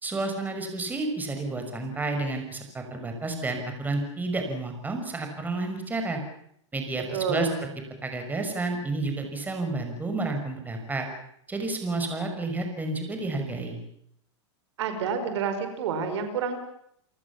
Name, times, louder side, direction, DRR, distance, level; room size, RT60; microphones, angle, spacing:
voice 1, 0.0-6.2 6.7-7.5 8.0-11.1 11.5-13.8, right 2 dB, 10° right, 5 dB, 5.7 m, -30 dB
voice 2, 7.1-7.6 14.8-16.6, right 5 dB, 70° right, 8 dB, 5.1 m, -28 dB
29.0 x 19.5 x 7.3 m, 0.70 s
hypercardioid pair, 130°, 15 cm